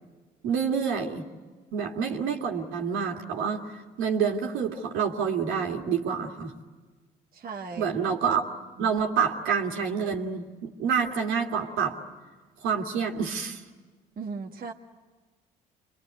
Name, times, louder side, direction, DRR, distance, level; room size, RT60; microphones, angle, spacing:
voice 1, 0.4-1.2 1.7-3.7 4.0-6.5 7.8-8.4 8.8-12.0 12.6-13.6, right 6 dB, 70° right, 1 dB, 2.6 m, -27 dB
voice 2, 7.3-7.9 8.1-8.2 8.8-8.9 14.2-14.7, right 4 dB, 45° right, 1 dB, 1.7 m, -37 dB
27.5 x 21.5 x 9.5 m, 1.4 s
hypercardioid pair, 55°, 21 cm